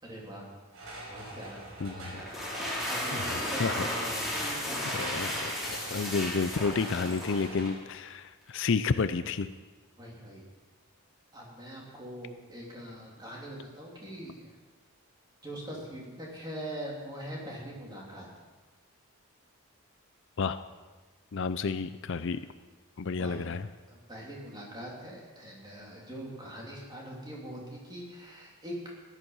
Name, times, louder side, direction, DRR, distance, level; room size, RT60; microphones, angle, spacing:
voice 1, 0.0-0.5 1.1-1.6 1.9-2.4 2.8-5.2 10.0-10.4 11.3-14.5 15.4-18.3 23.2-23.5 23.9-28.9, equal, 20° right, -3 dB, 3.2 m, -42 dB
sound 1, 0.7-7.7, right 1 dB, 90° right, 5.2 m, -44 dB
voice 2, 1.8-2.2 2.7-2.8 3.2-3.8 4.9-5.5 5.9-9.5 20.4-20.6 21.3-22.4 23.0-23.7, left 4 dB, 55° left, 12 dB, 0.5 m, -31 dB
sound 2, 2.2-7.8, left 1 dB, ahead, 2.9 m, -34 dB
15.5 x 11.0 x 5.6 m, 1.3 s
head